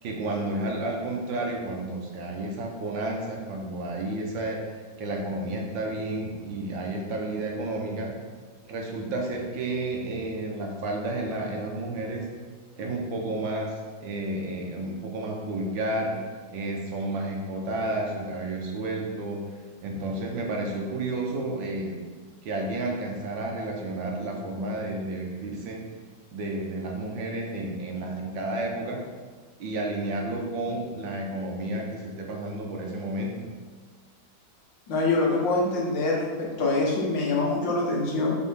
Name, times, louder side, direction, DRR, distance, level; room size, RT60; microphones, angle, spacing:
voice 1, 0.0-4.6 5.0-8.1 8.6-12.2 12.8-13.7 14.0-16.2 16.5-19.4 19.8-22.0 22.4-25.8 26.3-29.0 29.6-33.4, right 2 dB, 75° right, 0 dB, 1.8 m, -31 dB
voice 2, 34.9-38.4, left 3 dB, 70° left, -3 dB, 1.9 m, -25 dB
6.6 x 3.6 x 5.6 m, 1.5 s
omnidirectional pair, 2.1 m